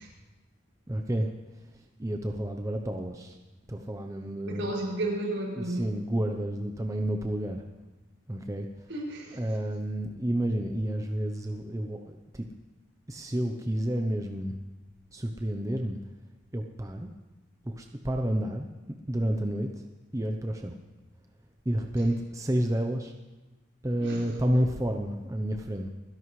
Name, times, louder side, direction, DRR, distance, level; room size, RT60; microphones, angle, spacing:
voice 1, 0.9-3.4 3.7-4.7 5.6-7.6 8.3-8.9 9.3-12.4 13.1-14.6 15.1-16.1 16.5-17.1 17.6-18.7 19.1-19.8 20.1-20.8 21.6-23.1 23.8-25.9, right 1 dB, 15° right, 4 dB, 0.7 m, -30 dB
voice 2, 4.5-5.9 8.9-9.4 24.0-24.3, right 1 dB, 80° right, -3 dB, 6.3 m, -32 dB
29.5 x 11.0 x 3.2 m, 1.2 s
head